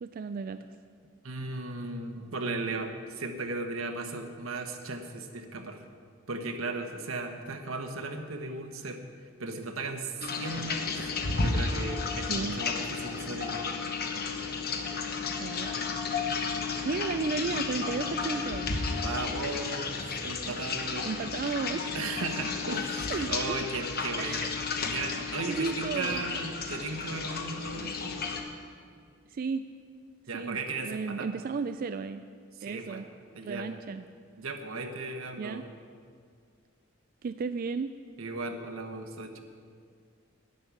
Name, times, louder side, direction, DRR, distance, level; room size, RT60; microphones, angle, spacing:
voice 1, 0.0-0.7 12.3-12.6 15.4-15.8 16.8-18.7 20.4-20.6 21.0-21.9 23.1-23.5 24.2-24.5 25.5-26.4 29.3-29.6 30.3-32.2 32.6-33.1 33.4-34.0 35.4-35.6 37.2-37.9, right 5 dB, 45° right, 10 dB, 0.3 m, -34 dB
voice 2, 1.2-5.8 6.3-9.0 9.4-13.6 19.0-21.1 21.9-28.2 30.3-31.3 32.6-33.0 33.3-34.1 34.4-35.6 38.2-39.4, right 3 dB, 90° right, 5 dB, 1.2 m, -36 dB
sound 1, 10.2-28.4, left 4 dB, 50° left, 1.2 m, -33 dB
11.0 x 9.5 x 7.1 m, 2.2 s
head